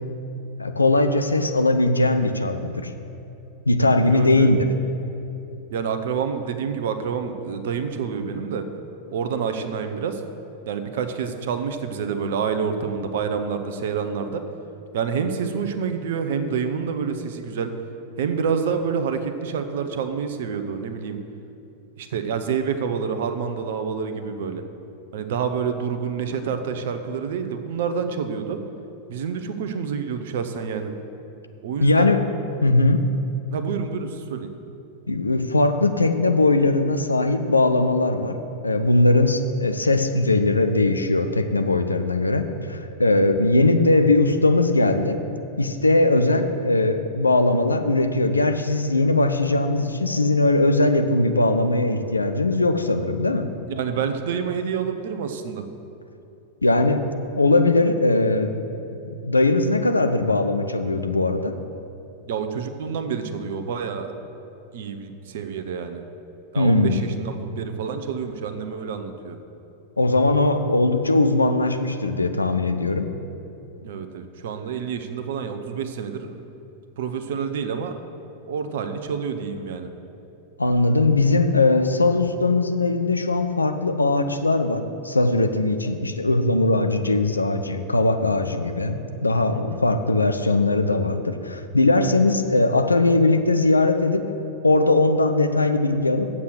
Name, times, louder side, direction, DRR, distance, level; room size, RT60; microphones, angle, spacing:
voice 1, 0.6-2.9 3.7-4.6 31.8-32.2 32.6-33.1 35.1-38.4 38.6-45.2 45.6-53.5 56.6-57.1 57.3-58.6 59.2-61.5 66.6-67.0 70.0-73.1 80.6-94.2 94.6-96.3, left 2 dB, 80° left, 7 dB, 0.6 m, -20 dB
voice 2, 4.1-4.5 5.7-8.7 9.1-10.2 10.7-14.4 14.9-17.7 18.2-21.2 22.0-24.6 25.1-28.6 29.1-30.9 31.6-32.1 33.5-34.5 53.7-55.7 62.3-64.1 64.7-66.0 66.5-69.4 73.8-76.3 77.0-78.0 78.5-79.9 89.7-89.8, right 6 dB, 55° right, 8 dB, 0.8 m, -28 dB
8.3 x 7.4 x 6.5 m, 2.9 s
figure-of-eight pair, 90°, 0 cm